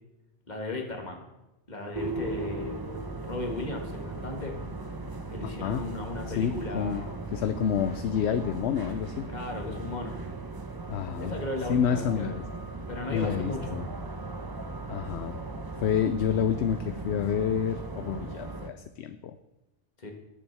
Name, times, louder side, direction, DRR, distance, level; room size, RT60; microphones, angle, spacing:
voice 1, 0.5-1.2 1.7-2.8 3.2-4.6 5.3-7.2 9.3-10.2 11.2-12.4 12.9-13.9 20.0-20.1, left 2 dB, 35° left, 2 dB, 1.8 m, -36 dB
sound 1, 1.9-18.7, right 3 dB, 25° right, 0.6 m, -38 dB
voice 2, 6.3-7.0 7.3-9.3 10.9-11.3 11.7-12.4 13.1-13.9 14.9-15.4 15.8-19.4, left 8 dB, 70° left, 10 dB, 0.8 m, -28 dB
19.5 x 7.2 x 3.4 m, 0.99 s
omnidirectional pair, 1.2 m